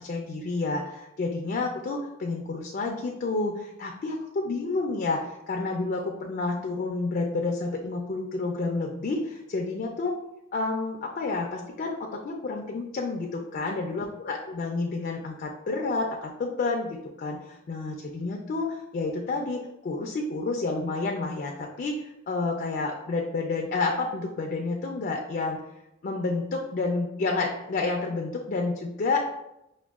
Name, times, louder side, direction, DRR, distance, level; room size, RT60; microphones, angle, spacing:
voice 1, 0.0-10.2 10.5-25.6 26.0-29.3, left 3 dB, 45° left, 1 dB, 0.3 m, -30 dB
6.0 x 2.1 x 2.3 m, 0.87 s
head